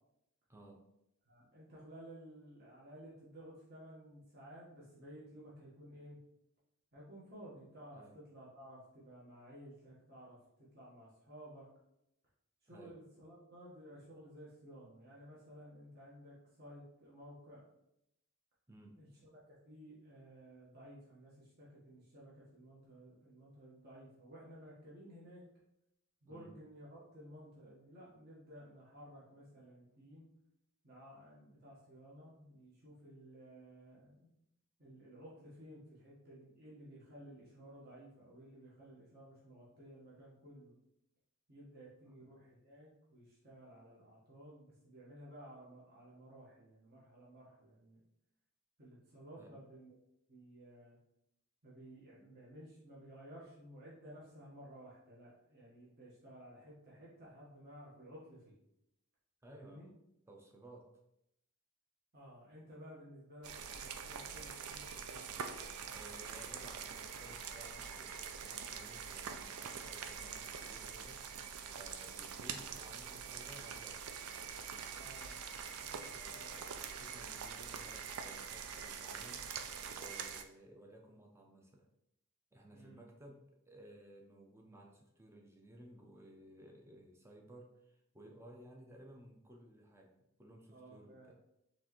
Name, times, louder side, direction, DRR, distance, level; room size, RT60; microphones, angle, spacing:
voice 1, 0.5-0.9 7.9-8.2 12.7-13.0 18.7-19.0 26.3-26.5 42.1-42.2 49.4-49.6 59.4-59.9 60.3-61.0 65.9-71.2 71.7-74.0 74.4-75.3 76.0-79.5 79.9-81.9 82.5-91.3, right 1 dB, 10° right, 1 dB, 0.5 m, -57 dB
voice 2, 1.3-6.2 6.9-10.4 10.7-11.6 12.6-17.6 19.0-25.4 26.2-30.3 30.8-34.3 34.8-40.7 41.5-48.0 48.8-49.9 50.3-51.0 51.6-58.6 59.5-59.9 62.1-65.3 75.0-75.4 75.7-76.5 82.7-83.0 90.7-91.3, equal, 45° right, -6 dB, 1.2 m, -55 dB
sound 1, 63.4-80.4, right 6 dB, 80° right, 0.4 m, -45 dB
4.5 x 3.3 x 3.0 m, 0.81 s
head